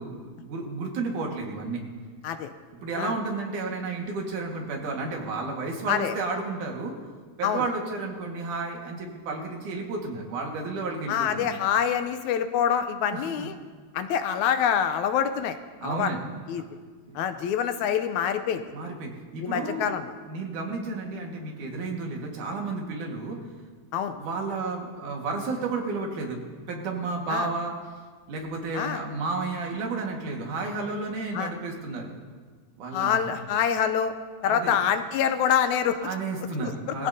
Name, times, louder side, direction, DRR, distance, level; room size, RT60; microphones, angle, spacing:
voice 1, 0.0-1.8 2.7-6.9 7.4-11.5 13.1-13.5 15.8-16.3 16.6-16.7 17.1-17.2 18.7-19.9 20.2-23.4 24.2-26.4 26.7-27.7 28.3-32.2 32.8-33.3 34.4-34.8 36.0-37.1, right 3 dB, 80° right, 0 dB, 3.3 m, -32 dB
voice 2, 11.1-13.6 13.9-16.1 16.5-16.6 17.2-18.6 19.4-20.1 23.9-24.2 27.3-27.5 28.7-29.0 31.3-31.5 32.9-34.1 34.4-36.0 36.6-36.7 37.0-37.1, left 8 dB, 80° left, 9 dB, 2.0 m, -26 dB
21.0 x 15.5 x 2.8 m, 1.5 s
omnidirectional pair, 3.5 m